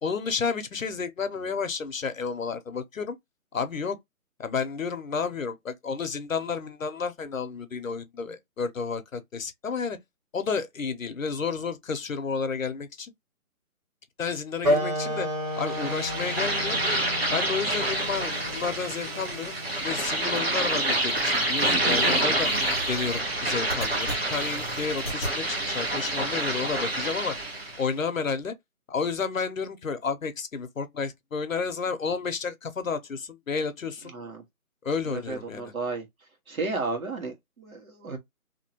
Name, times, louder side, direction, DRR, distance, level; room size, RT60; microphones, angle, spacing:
voice 1, 0.0-3.2 3.5-4.0 4.4-10.0 10.3-13.1 14.2-15.3 15.6-16.8 17.3-19.6 19.8-22.5 22.9-27.3 27.8-28.5 28.9-34.1 34.8-35.7, left 5 dB, 65° left, 0.8 m, -31 dB
Wind instrument woodwind instrument, 14.6-19.8, equal, 30° right, 1.4 m, -31 dB
sound 1, 15.6-27.8, right 2 dB, 45° right, 1.2 m, -27 dB
sound 2, 20.3-25.4, equal, 5° left, 1.1 m, -38 dB
voice 2, 34.0-34.4 35.0-36.0 36.5-38.2, right 3 dB, 70° right, 1.7 m, -33 dB
2.9 x 2.8 x 2.8 m
hypercardioid pair, 175°, 44 cm